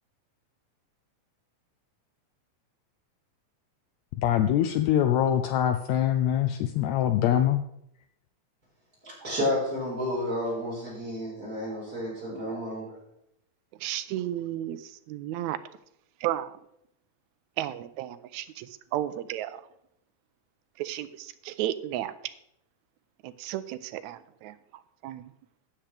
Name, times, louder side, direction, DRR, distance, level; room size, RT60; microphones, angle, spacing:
voice 1, 4.2-7.6, left 10 dB, 90° left, 9 dB, 1.5 m, -24 dB
voice 2, 9.0-12.9, left 1 dB, 25° right, -6 dB, 5.4 m, -31 dB
voice 3, 13.8-14.8 15.1-15.6 16.2-16.5 17.6-18.7 18.9-19.6 20.8-22.1 23.2-24.5 25.0-25.3, right 13 dB, 80° right, 11 dB, 1.7 m, -33 dB
13.0 x 9.1 x 3.4 m, 0.76 s
omnidirectional pair, 3.7 m